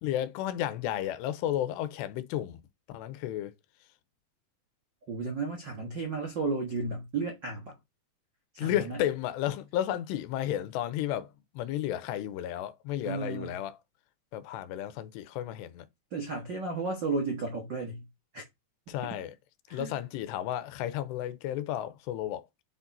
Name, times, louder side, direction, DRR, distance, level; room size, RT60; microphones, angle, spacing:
voice 1, 0.0-2.6 2.9-3.5 8.6-13.8 14.3-15.9 18.9-19.3 19.7-22.4, left 12 dB, 85° left, 2.9 m, -33 dB
voice 2, 5.1-7.8 8.5-9.0 13.0-13.6 16.1-18.1 18.3-18.4 19.7-20.0, right 3 dB, 80° right, 1.0 m, -33 dB
7.5 x 4.6 x 4.1 m
omnidirectional pair, 4.8 m